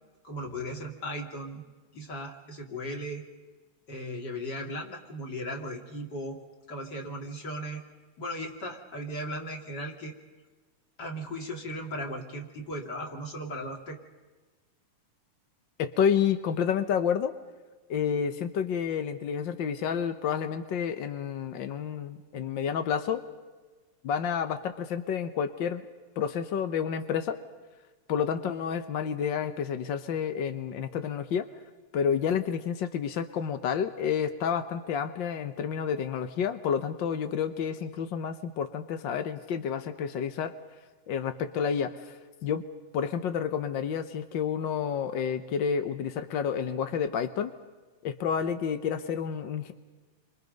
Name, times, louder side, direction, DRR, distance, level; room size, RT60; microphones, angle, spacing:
voice 1, 0.2-1.6 1.9-3.2 3.9-6.4 6.7-7.8 8.2-10.1 11.0-14.0, equal, 35° left, 2 dB, 3.3 m, -37 dB
voice 2, 15.8-17.3 17.9-23.2 24.0-25.8 26.2-27.4 28.1-31.5 31.9-40.5 41.1-42.1 42.4-42.6 42.9-47.5 48.0-49.7, left 7 dB, 70° left, 9 dB, 1.1 m, -29 dB
29.5 x 25.5 x 5.3 m, 1.3 s
omnidirectional pair, 3.6 m